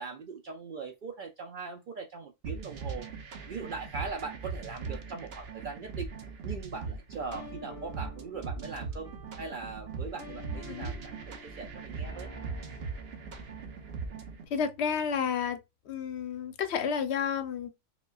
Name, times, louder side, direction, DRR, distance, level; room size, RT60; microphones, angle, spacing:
voice 1, 0.0-3.1 3.5-6.1 6.4-9.1 9.4-12.3, right 4 dB, 80° right, 0.4 m, -40 dB
sound 1, 2.4-14.5, right 5 dB, 55° right, 0.8 m, -40 dB
sound 2, 7.3-14.3, left 1 dB, 25° right, 1.9 m, -49 dB
voice 2, 14.5-15.6 15.9-17.7, left 7 dB, 60° left, 0.8 m, -31 dB
4.9 x 2.3 x 2.3 m
omnidirectional pair, 1.4 m